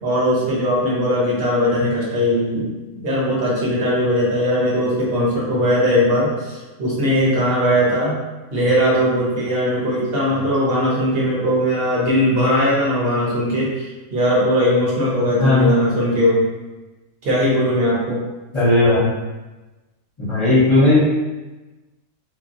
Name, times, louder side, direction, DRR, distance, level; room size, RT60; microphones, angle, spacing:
voice 1, 0.0-8.1 8.5-16.4 17.2-18.2, equal, 45° right, -6 dB, 1.0 m, -19 dB
voice 2, 15.3-15.7 18.5-19.1 20.2-21.0, left 2 dB, 30° left, -9 dB, 0.6 m, -16 dB
2.9 x 2.6 x 2.7 m, 1.1 s
omnidirectional pair, 1.6 m